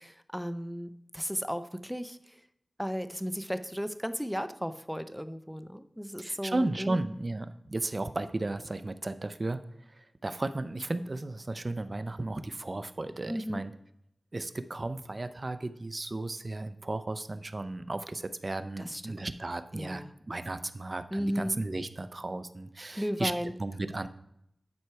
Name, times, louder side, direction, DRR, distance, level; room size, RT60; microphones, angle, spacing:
voice 1, 0.0-2.4 2.8-7.0 13.3-13.6 18.8-19.2 19.7-20.1 21.1-21.6 22.9-23.6, equal, ahead, 11 dB, 0.6 m, -35 dB
voice 2, 6.2-9.6 9.9-13.7 14.3-23.3 23.6-24.1, right 2 dB, 45° right, 12 dB, 0.5 m, -34 dB
9.6 x 4.5 x 4.6 m, 0.75 s
cardioid pair, 50°, 0 cm